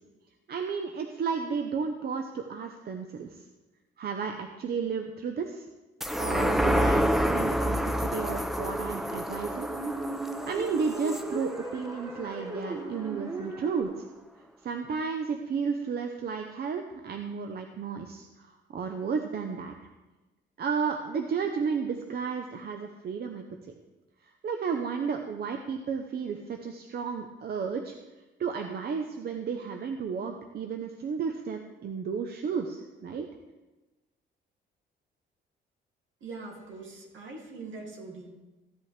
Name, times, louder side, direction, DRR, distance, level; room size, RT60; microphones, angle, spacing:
voice 1, 0.5-3.4 4.0-5.6 6.2-9.7 10.2-14.1 14.6-19.7 20.6-23.4 24.4-27.9 28.4-33.3, right 6 dB, 55° right, 5 dB, 0.8 m, -33 dB
sound 1, 6.0-12.8 13.2-13.3, equal, ahead, 0.6 m, -29 dB
sound 2, 9.5-13.8, right 2 dB, 20° right, 2.6 m, -37 dB
voice 2, 36.2-38.3, right 3 dB, 75° right, -1 dB, 2.6 m, -42 dB
14.5 x 8.4 x 3.4 m, 1.1 s
cardioid pair, 90°, 20 cm